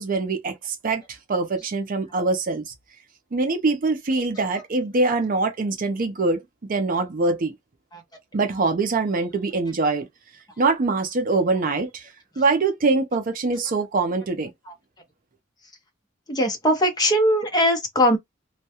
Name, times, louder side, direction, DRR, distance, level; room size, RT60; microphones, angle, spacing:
voice 1, 0.0-2.7 3.3-6.4 6.7-7.5 8.3-10.1 10.6-12.1 12.4-14.5, right 3 dB, 45° right, 0.5 m, -23 dB
voice 2, 16.3-18.2, equal, 20° left, 0.7 m, -21 dB
2.2 x 2.2 x 2.8 m
head